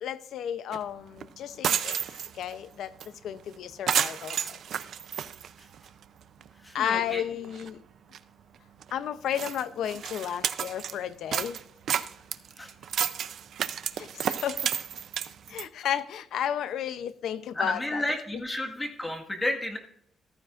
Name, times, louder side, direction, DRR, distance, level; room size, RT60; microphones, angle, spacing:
voice 1, 0.0-2.0 2.3-2.9 3.2-4.6 6.7-7.8 8.9-11.6 14.0-14.6 15.5-18.0 18.3-18.4, left 10 dB, 75° left, 0.6 m, -33 dB
sound 1, 0.7-0.8 1.2-1.3 1.5-2.5 3.0-3.1 3.4-3.5 3.9-6.0 6.4-6.5 7.1-7.2 7.4-7.7 8.1-8.2 8.8-8.9 9.3-11.0 11.3-15.7, right 9 dB, 60° right, 0.5 m, -31 dB
voice 2, 6.6-7.2 12.6-12.7 17.5-19.8, left 1 dB, 15° left, 1.7 m, -31 dB
14.0 x 14.0 x 2.5 m
cardioid pair, 160°, 0 cm